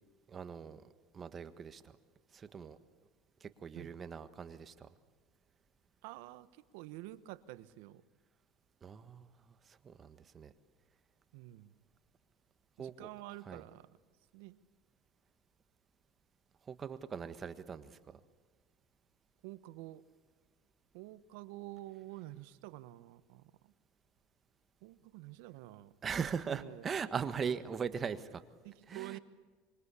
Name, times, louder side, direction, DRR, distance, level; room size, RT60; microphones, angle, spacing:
voice 1, 0.3-0.8 1.1-1.9 2.3-2.8 3.4-4.9 8.8-9.3 9.7-10.5 12.8-13.1 13.4-13.7 16.6-18.0 26.0-28.4 28.9-29.2, right 6 dB, 30° right, 11 dB, 1.5 m, -40 dB
voice 2, 6.0-6.5 6.7-8.0 11.3-11.7 12.8-13.9 14.3-14.6 19.4-20.0 20.9-23.5 24.8-25.9 26.4-26.8 28.6-29.2, right 17 dB, 75° right, 14 dB, 1.2 m, -48 dB
25.5 x 23.5 x 8.4 m, 1.4 s
supercardioid pair, 115°, 0 cm